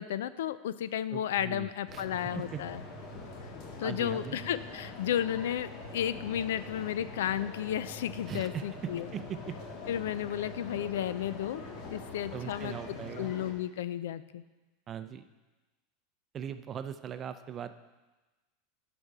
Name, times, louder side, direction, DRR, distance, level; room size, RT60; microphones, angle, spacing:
voice 1, 0.0-2.8 3.8-9.1 9.9-11.6 11.9-14.4, left 10 dB, 85° left, 15 dB, 0.4 m, -33 dB
voice 2, 1.1-2.0 2.3-2.6 3.8-4.4 8.3-8.6 9.1-9.5 12.3-13.3 14.9-15.2 16.3-17.7, right 9 dB, 30° right, 10 dB, 0.5 m, -40 dB
sound 1, 1.9-13.5, left 3 dB, 55° left, 1.6 m, -44 dB
11.5 x 5.2 x 4.8 m, 1.2 s
supercardioid pair, 135°, 0 cm